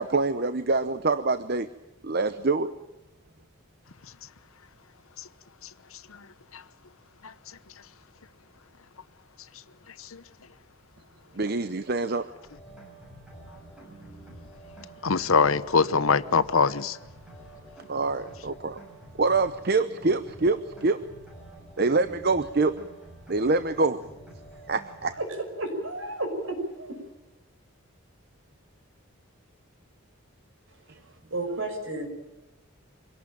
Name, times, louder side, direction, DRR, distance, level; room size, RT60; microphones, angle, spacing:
voice 1, 0.0-1.7 2.0-2.8 11.3-12.3 17.9-18.8 19.2-21.1 21.8-22.8 23.3-24.0 24.7-25.2 30.9-31.0, right 3 dB, 45° right, 0.8 m, -25 dB
sound 1, 12.4-25.2, right 1 dB, 5° right, 7.1 m, -48 dB
voice 2, 15.0-17.0, left 5 dB, 80° left, 0.9 m, -23 dB
voice 3, 25.6-27.0 31.3-32.1, right 2 dB, 70° right, 6.0 m, -31 dB
24.5 x 18.0 x 8.9 m
head